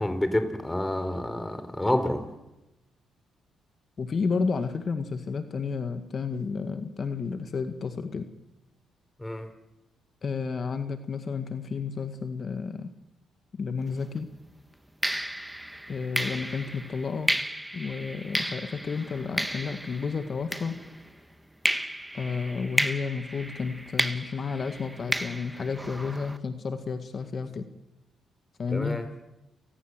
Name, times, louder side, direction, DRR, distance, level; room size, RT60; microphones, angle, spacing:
voice 1, 0.0-2.2 9.2-9.5 28.7-29.0, left 1 dB, 10° left, 9 dB, 4.1 m, -28 dB
voice 2, 4.0-8.3 10.2-12.9 13.5-14.3 15.9-17.3 17.7-20.8 22.1-27.7 28.6-29.0, left 5 dB, 45° left, 8 dB, 2.0 m, -31 dB
sound 1, 13.9-14.1 15.0-21.2 21.6-26.4, right 1 dB, 5° right, 1.6 m, -33 dB
30.0 x 19.5 x 8.0 m, 0.95 s
cardioid pair, 90°, 0 cm